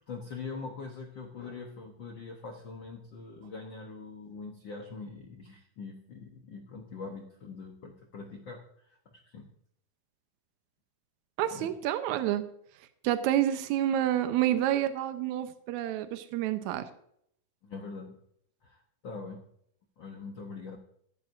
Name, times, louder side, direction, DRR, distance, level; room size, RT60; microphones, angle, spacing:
voice 1, 0.1-9.5 11.5-11.7 17.6-18.2 18.6-19.5 20.0-20.8, left 4 dB, 70° left, 3 dB, 1.1 m, -43 dB
voice 2, 11.4-12.5 13.0-16.9, right 12 dB, 75° right, 9 dB, 2.1 m, -28 dB
15.0 x 12.5 x 2.6 m, 0.70 s
omnidirectional pair, 3.6 m